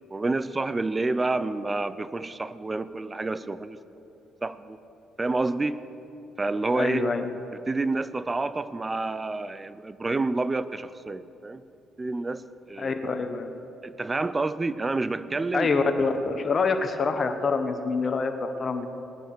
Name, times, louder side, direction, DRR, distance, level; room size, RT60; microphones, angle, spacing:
voice 1, 0.1-3.8 4.4-4.8 5.2-5.8 6.4-7.1 7.5-11.6 12.0-13.0 13.8-15.7, right 3 dB, 25° right, 15 dB, 0.7 m, -29 dB
voice 2, 6.7-7.3 12.8-13.5 15.5-18.9, left 4 dB, 45° left, 6 dB, 1.3 m, -26 dB
18.5 x 10.0 x 6.1 m, 3.0 s
hypercardioid pair, 55°, 0 cm